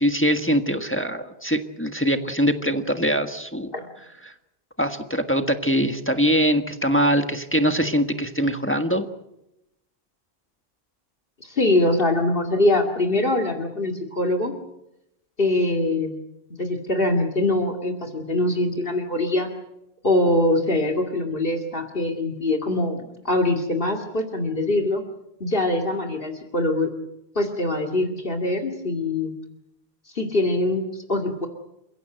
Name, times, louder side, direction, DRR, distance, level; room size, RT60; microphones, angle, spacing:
voice 1, 0.0-3.7 4.2-4.3 4.8-9.1, equal, 10° left, 6 dB, 1.5 m, -22 dB
voice 2, 11.4-14.5 15.4-16.2 16.5-19.5 20.0-25.0 25.4-26.9 27.4-29.3 30.1-31.5, left 2 dB, 60° left, 2 dB, 2.5 m, -23 dB
29.0 x 16.5 x 7.9 m, 0.86 s
omnidirectional pair, 1.1 m